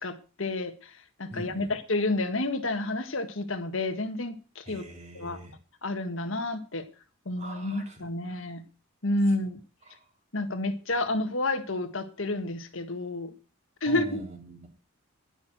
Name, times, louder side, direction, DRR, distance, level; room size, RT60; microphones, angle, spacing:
voice 1, 0.0-0.9 1.2-4.8 5.1-5.4 5.8-6.9 7.2-8.6 9.0-9.6 10.3-13.3 13.8-14.2, left 2 dB, 70° left, 1.7 m, -30 dB
voice 2, 1.3-1.8 4.6-5.5 7.4-8.4 9.3-9.4 9.8-10.1 13.8-14.7, right 2 dB, 30° right, 3.5 m, -43 dB
11.0 x 11.0 x 6.1 m
head